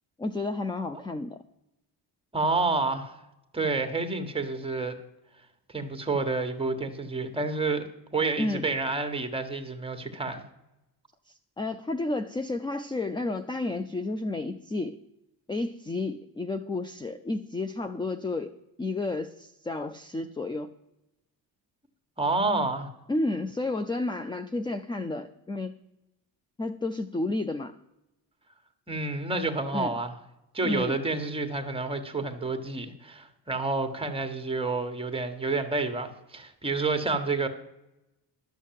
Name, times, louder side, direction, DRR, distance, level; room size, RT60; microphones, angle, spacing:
voice 1, 0.2-1.4 8.4-8.7 11.3-15.0 15.5-20.7 23.1-25.7 26.6-27.7 29.7-29.9 30.6-31.0, left 2 dB, 10° left, 10 dB, 0.4 m, -31 dB
voice 2, 2.3-3.2 3.5-5.0 5.7-7.8 8.1-10.4 22.2-22.9 28.9-30.1 30.5-37.5, right 3 dB, 15° right, 7 dB, 1.4 m, -29 dB
12.0 x 6.4 x 7.5 m, 0.91 s
cardioid pair, 100°, 43 cm